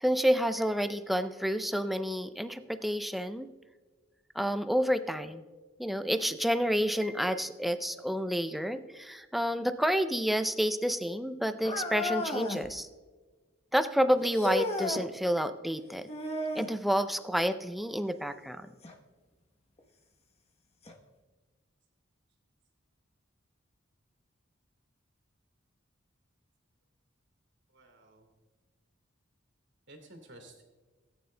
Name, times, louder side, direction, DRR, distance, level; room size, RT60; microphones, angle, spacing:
voice 1, 0.0-3.5 4.4-5.4 5.8-12.9 13.7-16.1 16.6-18.7, equal, ahead, 10 dB, 0.4 m, -29 dB
sound 1, 11.6-12.7 14.3-15.1 16.1-16.8 18.8-18.9 19.8-19.9 20.9-21.0, left 1 dB, 30° left, 1.0 m, -33 dB
voice 2, 27.7-28.3 29.9-30.6, right 1 dB, 60° right, 3 dB, 2.4 m, -52 dB
18.0 x 9.4 x 2.2 m, 1.3 s
head